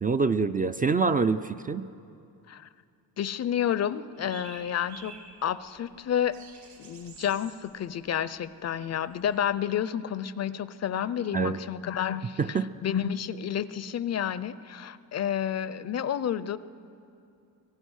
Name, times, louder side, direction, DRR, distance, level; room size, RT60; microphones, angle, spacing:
voice 1, 0.0-1.9 11.3-11.6 12.4-12.7, right 4 dB, 25° right, 10 dB, 0.4 m, -25 dB
voice 2, 3.2-5.1 5.4-6.4 6.8-16.6, left 9 dB, 45° left, 16 dB, 0.6 m, -30 dB
sound 1, 4.1-9.4, right 5 dB, 70° right, 5.0 m, -51 dB
25.5 x 17.5 x 6.4 m, 2.5 s
cardioid pair, 120°, 38 cm